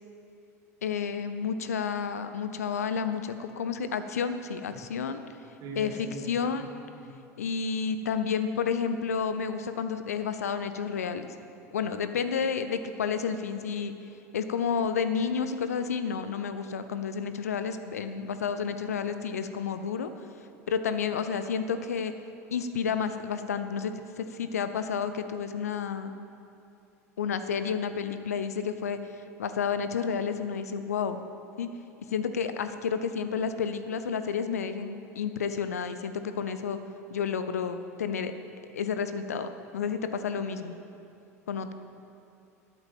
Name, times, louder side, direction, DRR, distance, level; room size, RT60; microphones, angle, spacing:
voice 1, 0.8-5.2 5.8-5.9 6.3-6.6 7.4-11.3 11.7-13.9 14.3-20.1 20.7-22.1 22.5-26.2 27.2-29.0 29.4-31.2 31.6-31.7 32.1-36.8 37.1-38.3 38.7-40.7 41.5-41.7, left 6 dB, 75° left, 10 dB, 0.7 m, -30 dB
voice 2, 5.6-6.7 7.0-7.2, equal, 45° right, -1 dB, 2.8 m, -41 dB
13.0 x 9.2 x 7.2 m, 2.8 s
figure-of-eight pair, 75°, 8 cm